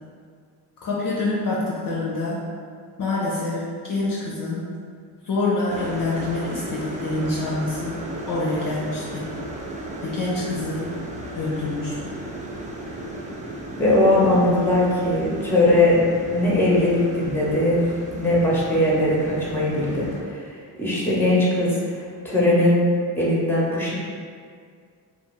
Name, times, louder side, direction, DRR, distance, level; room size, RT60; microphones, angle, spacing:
voice 1, 0.8-2.4 3.0-4.7 5.3-8.0 8.3-9.3 10.0-10.9 11.3-12.1, left 2 dB, 45° left, -6 dB, 0.7 m, -26 dB
sound 1, 5.7-20.2, right 1 dB, 15° right, 0.3 m, -35 dB
voice 2, 13.8-16.0 16.3-17.8 18.1-20.1 20.8-21.8 22.2-22.9 23.2-23.9, left 1 dB, 5° left, -5 dB, 0.8 m, -19 dB
2.3 x 2.3 x 3.1 m, 2.1 s
hypercardioid pair, 45°, 49 cm